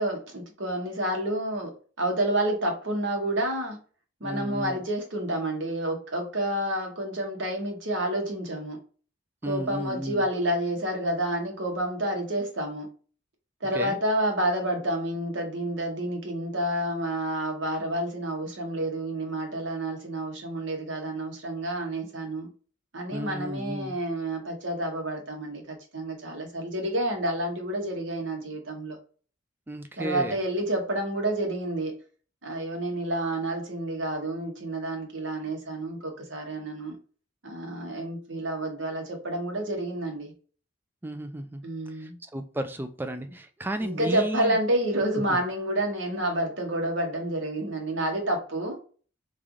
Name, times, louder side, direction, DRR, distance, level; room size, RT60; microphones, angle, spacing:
voice 1, 0.0-1.7 2.0-3.8 4.2-8.8 9.4-12.9 13.6-22.5 22.9-29.0 30.0-32.0 32.4-37.0 37.4-40.3 41.6-42.2 43.8-48.8, right 1 dB, 65° right, 1.0 m, -29 dB
voice 2, 4.2-4.8 9.4-10.2 13.7-14.0 23.1-23.9 29.7-30.4 41.0-41.6 42.0-44.6 45.3-45.4, right 1 dB, 10° right, 0.3 m, -33 dB
3.2 x 2.4 x 3.7 m
head